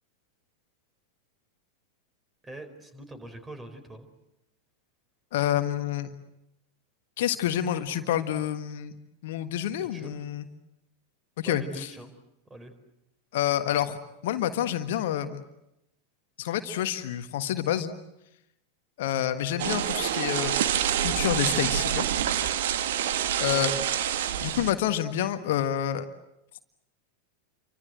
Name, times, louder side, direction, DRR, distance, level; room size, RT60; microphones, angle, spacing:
voice 1, 2.4-4.1 9.7-10.1 11.4-12.1 12.5-12.7 23.4-23.9, right 1 dB, 15° right, 10 dB, 4.7 m, -43 dB
voice 2, 5.3-6.1 7.2-8.9 9.2-10.5 11.4-11.9 13.3-14.0 14.2-15.4 16.4-17.9 19.0-20.6 21.0-22.0 23.4-23.7 24.4-26.0, left 11 dB, 55° left, 8 dB, 1.5 m, -28 dB
sound 1, 19.6-24.7, right 10 dB, 55° right, 1.6 m, -27 dB
29.5 x 25.0 x 7.8 m, 0.86 s
figure-of-eight pair, 90°, 0 cm